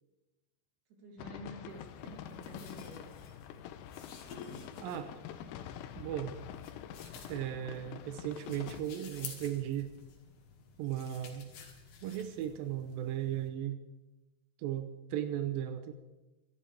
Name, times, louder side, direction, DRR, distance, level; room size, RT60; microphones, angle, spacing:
voice 1, 0.9-3.1, right 2 dB, 50° right, -1 dB, 4.1 m, -49 dB
sound 1, 1.2-8.8, left 10 dB, 85° left, 3.0 m, -46 dB
sound 2, 1.7-13.5, left 6 dB, 70° left, 4.0 m, -52 dB
voice 2, 4.8-5.1 5.4-5.5 6.0-6.4 7.3-9.9 10.8-11.5 12.0-13.8 14.6-15.9, right 11 dB, 80° right, 9 dB, 2.1 m, -36 dB
25.0 x 13.0 x 3.5 m, 1.1 s
omnidirectional pair, 5.0 m